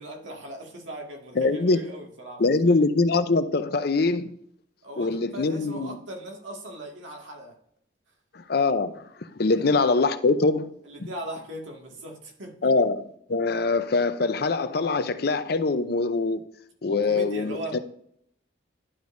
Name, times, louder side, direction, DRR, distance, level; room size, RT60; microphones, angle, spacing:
voice 1, 0.0-2.8 4.8-7.6 9.5-9.8 10.8-12.7 16.9-17.8, right 1 dB, 90° right, 1.9 m, -39 dB
voice 2, 1.4-1.8 2.4-4.3 5.0-6.0 8.3-9.1 9.4-10.7 12.6-13.0 13.3-16.4 16.8-17.8, left 3 dB, 55° left, 0.6 m, -23 dB
11.0 x 5.2 x 2.6 m
head